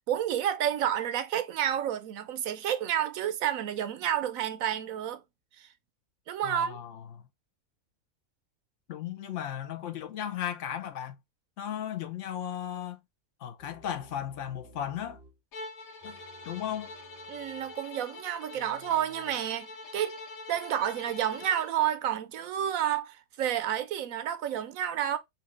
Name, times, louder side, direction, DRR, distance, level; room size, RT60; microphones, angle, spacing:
voice 1, 0.1-5.2 5.6-5.7 6.3-6.8 17.3-19.7 19.9-20.2 20.5-25.2, right 10 dB, 80° right, 1.0 m, -30 dB
voice 2, 6.4-7.2 8.9-11.2 11.6-13.0 13.4-15.2 16.0-16.2 16.4-16.9, left 10 dB, 65° left, 1.1 m, -36 dB
sound 1, 13.6-15.4 16.0-17.9 18.5-19.4, right 2 dB, 35° right, 2.0 m, -56 dB
Bowed string instrument, 15.5-21.8, left 3 dB, 90° left, 1.6 m, -45 dB
4.3 x 2.6 x 3.8 m
omnidirectional pair, 1.4 m